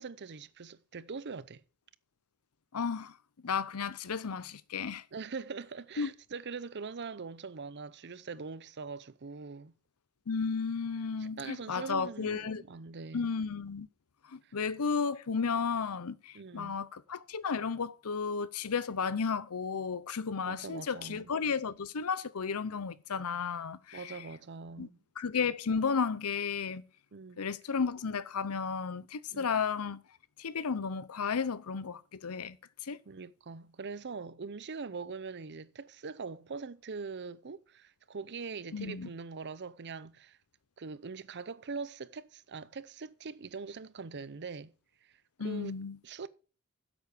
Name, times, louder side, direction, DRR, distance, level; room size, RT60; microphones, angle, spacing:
voice 1, 0.0-1.6 5.1-9.7 11.2-13.3 14.4-14.5 16.3-16.8 20.5-21.3 23.9-25.0 27.1-27.4 29.3-29.5 33.1-40.4 40.8-44.7 45.0-45.1 45.4-45.8 46.0-46.3, right 4 dB, 50° right, 0.7 m, -42 dB
voice 2, 2.7-3.2 3.4-5.0 6.0-6.1 10.3-12.6 13.1-13.9 14.3-24.3 24.8-24.9 25.2-26.8 27.4-30.0 30.4-32.6 32.8-33.0 38.7-39.1 45.4-46.0, left 5 dB, 85° left, 0.7 m, -33 dB
9.3 x 8.0 x 6.6 m
head